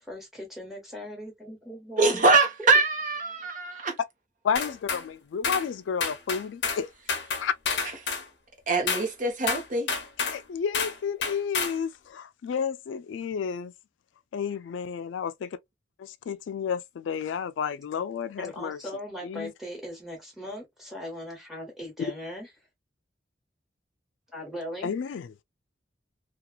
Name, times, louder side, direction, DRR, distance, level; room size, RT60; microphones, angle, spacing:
voice 1, 0.1-2.3 2.6-2.7 18.4-22.5 24.3-24.9, equal, ahead, 1.2 m, -39 dB
voice 2, 2.0-3.9 8.7-9.9, right 3 dB, 45° right, 0.8 m, -23 dB
voice 3, 4.4-6.9 7.4-7.5 10.2-13.7 14.3-15.6 16.0-18.8 19.2-19.5 24.8-25.3, left 7 dB, 85° left, 0.3 m, -31 dB
sound 1, 4.6-5.0 5.4-5.7 6.0-6.8 7.1-8.3 8.9-9.1 9.5-10.4 10.7-11.0 11.2-11.8, left 5 dB, 70° left, 0.7 m, -29 dB
2.8 x 2.3 x 2.2 m
head